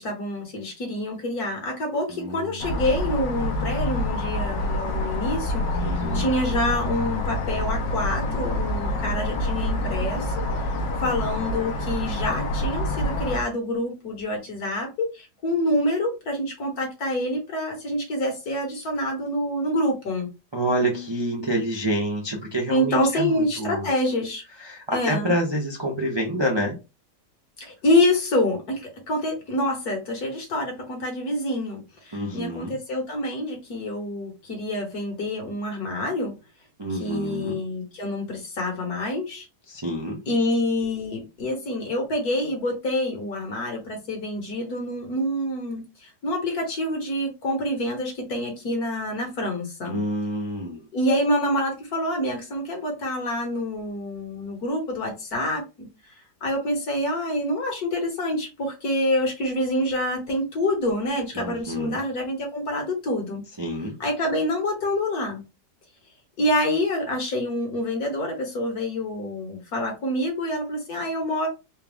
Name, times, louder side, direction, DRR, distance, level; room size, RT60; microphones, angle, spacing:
voice 1, 0.0-10.7 11.0-20.3 22.7-24.4 24.9-25.3 27.6-36.4 37.0-39.4 40.3-50.0 50.9-55.9 56.4-63.4 64.0-65.4 66.4-71.5, left 1 dB, 60° left, 1.8 m, -27 dB
voice 2, 2.1-2.8 5.8-6.3 20.5-23.9 24.6-26.8 32.1-32.8 36.8-37.6 39.7-40.2 49.9-50.8 61.3-62.0 63.6-64.0, right 1 dB, 45° right, 0.3 m, -28 dB
sound 1, 2.6-13.4, left 1 dB, 90° left, 1.5 m, -27 dB
4.4 x 2.3 x 3.4 m
omnidirectional pair, 1.9 m